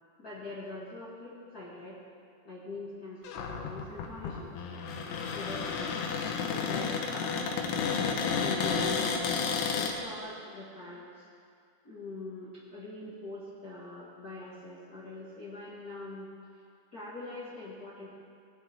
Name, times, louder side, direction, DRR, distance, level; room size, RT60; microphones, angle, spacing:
voice 1, 0.2-2.0 2.4-5.8 6.4-7.4 8.0-11.3 11.8-16.3 16.9-18.1, left 2 dB, 45° left, -8 dB, 1.2 m, -43 dB
Cupboard open or close, 3.2-9.9, left 5 dB, 80° left, 3.1 m, -31 dB
18.5 x 10.5 x 3.6 m, 2.3 s
omnidirectional pair, 4.8 m